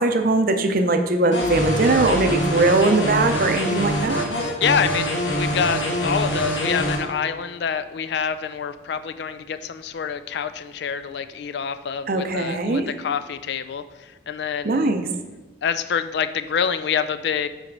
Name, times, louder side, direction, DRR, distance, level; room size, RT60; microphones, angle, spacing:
voice 1, 0.0-4.2 12.1-12.9 14.6-15.1, right 2 dB, 50° right, 6 dB, 0.5 m, -20 dB
sound 1, 1.3-7.0, equal, 80° left, 1.2 m, -24 dB
sound 2, 1.4-5.1, right 1 dB, 90° right, 1.1 m, -36 dB
voice 2, 4.6-14.9 15.6-17.5, left 7 dB, 60° left, 11 dB, 0.3 m, -26 dB
5.7 x 4.2 x 5.2 m, 1.2 s
head